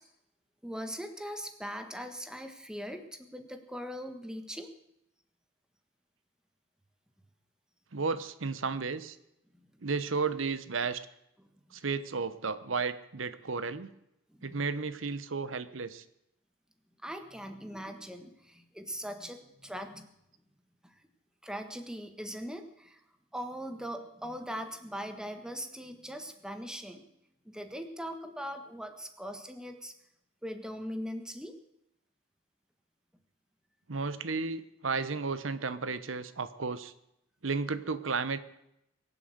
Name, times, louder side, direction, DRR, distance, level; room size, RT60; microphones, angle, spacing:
voice 1, 0.6-4.7 14.4-14.6 17.0-20.1 20.8-20.9 21.4-23.0 23.3-27.0 27.4-29.9 30.4-31.5, equal, 5° right, 7 dB, 1.5 m, -40 dB
voice 2, 7.9-9.2 9.8-11.0 11.7-13.9 14.4-16.0 33.9-36.9 37.4-38.4, right 4 dB, 75° right, 14 dB, 1.0 m, -33 dB
22.5 x 7.9 x 7.8 m, 0.82 s
head